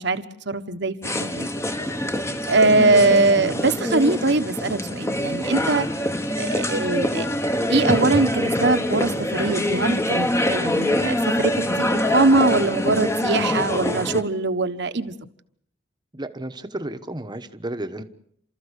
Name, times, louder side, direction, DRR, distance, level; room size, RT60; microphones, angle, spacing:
voice 1, 0.0-1.5 2.5-5.9 6.4-7.3 7.7-15.1, right 2 dB, 65° right, 1.3 m, -22 dB
sound 1, 1.0-14.2, left 1 dB, 15° left, 1.2 m, -24 dB
voice 2, 2.7-3.0 16.1-18.0, right 1 dB, 25° right, 1.2 m, -32 dB
29.5 x 14.0 x 8.3 m
head